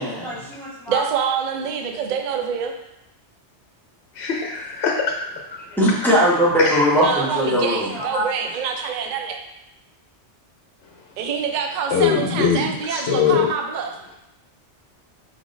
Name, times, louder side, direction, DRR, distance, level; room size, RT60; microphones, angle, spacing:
voice 1, 0.0-1.0 5.7-8.3, equal, ahead, -9 dB, 1.2 m, -20 dB
voice 2, 0.9-2.7 7.0-9.4 11.2-13.9, right 7 dB, 55° right, 4 dB, 0.5 m, -26 dB
voice 3, 4.2-5.3 11.9-12.6 12.9-13.5, left 7 dB, 70° left, 0 dB, 0.9 m, -21 dB
5.1 x 3.8 x 2.5 m, 0.83 s
omnidirectional pair, 1.2 m